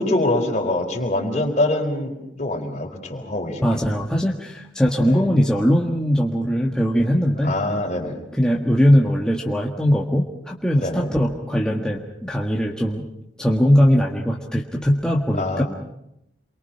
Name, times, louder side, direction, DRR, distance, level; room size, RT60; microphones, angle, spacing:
voice 1, 0.0-3.8 5.0-5.2 7.4-8.2 10.8-11.1 15.4-15.6, left 1 dB, 40° left, 2 dB, 4.4 m, -24 dB
voice 2, 3.6-7.5 8.3-13.0 13.4-15.6, equal, 5° left, -2 dB, 1.6 m, -20 dB
28.5 x 23.5 x 5.8 m, 0.81 s
head